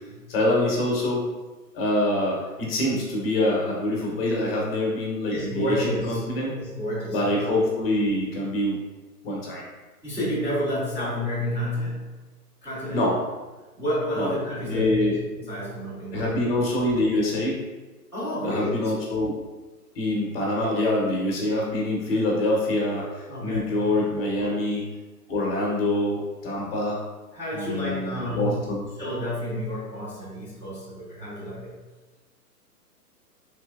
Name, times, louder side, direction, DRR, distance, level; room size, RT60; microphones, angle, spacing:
voice 1, 0.3-1.3 1.7-6.5 7.1-8.8 9.2-9.6 12.9-13.2 14.1-14.3 14.7-15.2 16.1-17.6 18.4-19.3 20.0-24.8 25.3-27.0 27.5-28.8, left 1 dB, 40° left, -3 dB, 0.8 m, -25 dB
voice 2, 5.3-6.2 6.5-7.3 10.0-12.0 12.6-13.0 13.8-14.9 15.4-16.4 18.1-18.8 23.3-23.7 24.4-24.5 27.3-28.6 29.0-31.7, equal, 5° right, -16 dB, 0.7 m, -30 dB
3.3 x 2.9 x 2.3 m, 1.2 s
hypercardioid pair, 135°, 47 cm